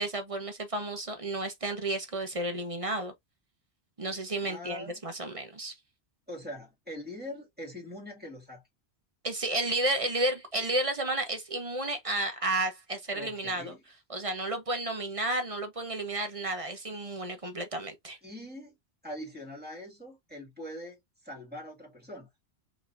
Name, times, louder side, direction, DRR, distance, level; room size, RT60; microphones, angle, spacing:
voice 1, 0.0-3.1 4.0-5.7 9.2-13.7 14.1-18.2, right 2 dB, 35° right, 1.0 m, -32 dB
voice 2, 4.4-4.9 6.3-8.6 13.1-13.8 18.2-18.7 19.0-22.3, left 1 dB, 10° right, 2.3 m, -42 dB
5.5 x 3.3 x 2.6 m
omnidirectional pair, 1.1 m